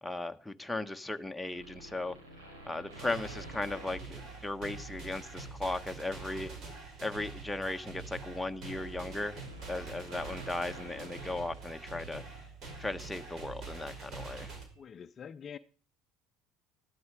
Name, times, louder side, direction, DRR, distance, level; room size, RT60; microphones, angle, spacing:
voice 1, 0.0-2.1 2.6-6.5 7.0-9.4 9.7-12.2 12.8-14.5, left 2 dB, 5° left, 1.2 m, -37 dB
sound 1, 1.4-5.1 5.6-5.9 7.1-12.4 12.7-12.8, right 1 dB, 90° right, 6.3 m, -51 dB
sound 2, 2.9-14.6, right 4 dB, 55° right, 5.2 m, -45 dB
voice 2, 14.8-15.6, left 7 dB, 40° left, 0.6 m, -45 dB
14.0 x 12.5 x 4.9 m
hypercardioid pair, 70°, 0 cm